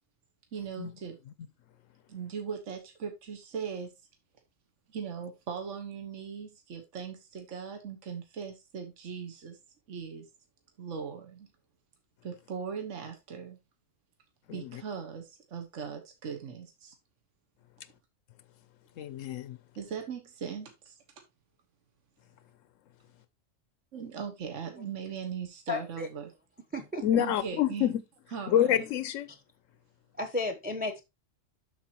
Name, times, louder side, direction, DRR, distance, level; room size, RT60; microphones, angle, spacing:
voice 1, 0.5-1.2 2.1-3.9 4.9-9.6 9.9-10.2 10.8-11.5 12.2-13.6 14.5-16.9 19.8-21.0 23.9-26.3 27.2-27.9 28.3-28.8, right 6 dB, 70° right, 1.5 m, -39 dB
voice 2, 14.5-14.8 19.0-19.6 27.0-28.0 28.5-29.3, left 10 dB, 85° left, 1.0 m, -27 dB
voice 3, 25.7-26.1 26.7-27.0 30.2-31.0, left 2 dB, 10° right, 0.8 m, -33 dB
12.0 x 4.4 x 2.9 m
omnidirectional pair, 1.3 m